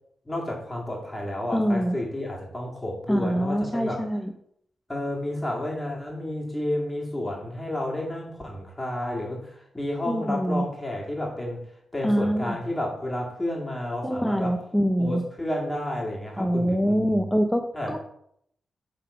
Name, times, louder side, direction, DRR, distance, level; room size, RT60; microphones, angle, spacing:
voice 1, 0.3-4.1 4.9-11.6 11.9-14.6 15.0-17.3 17.7-18.0, left 1 dB, 20° left, -2 dB, 2.1 m, -31 dB
voice 2, 1.5-2.0 3.1-4.3 10.1-10.7 12.0-12.6 14.0-15.2 16.4-17.6 17.9-18.0, equal, 5° left, 5 dB, 0.6 m, -24 dB
6.4 x 4.0 x 5.0 m, 0.72 s
supercardioid pair, 45°, 0 cm